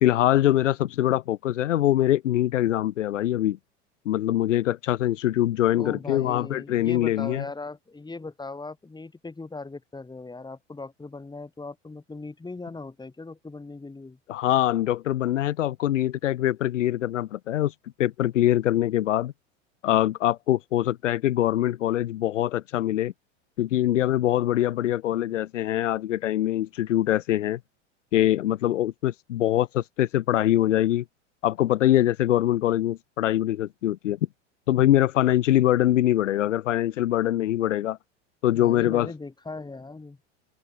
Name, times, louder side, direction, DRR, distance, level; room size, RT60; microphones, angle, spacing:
voice 1, 0.0-3.6 4.0-7.4 14.3-17.7 18.0-19.3 19.8-23.1 23.6-27.6 28.1-31.0 31.4-34.2 34.7-38.0 38.4-39.1, left 13 dB, 80° left, 1.0 m, -23 dB
voice 2, 5.7-14.2 38.5-40.2, left 3 dB, 10° left, 7.4 m, -39 dB
open air
hypercardioid pair, 95°, 36 cm